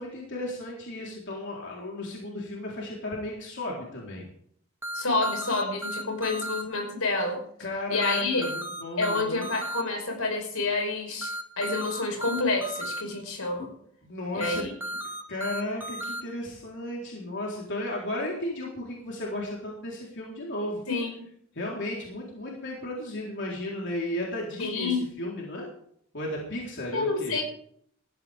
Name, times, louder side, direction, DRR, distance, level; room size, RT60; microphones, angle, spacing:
voice 1, 0.0-4.2 7.6-9.5 14.0-14.6 15.3-20.8 21.5-25.7 26.1-27.4, left 1 dB, 55° left, -3 dB, 4.0 m, -34 dB
sound 1, 4.8-6.6 8.0-9.8 11.2-13.0 14.4-16.2, right 1 dB, 10° right, 2.2 m, -34 dB
voice 2, 4.9-7.4 7.9-8.4 9.0-13.7 14.3-14.7 20.9-21.2 24.6-25.1 26.9-27.4, left 3 dB, 75° left, 3 dB, 5.6 m, -28 dB
19.0 x 14.5 x 3.6 m, 0.65 s
head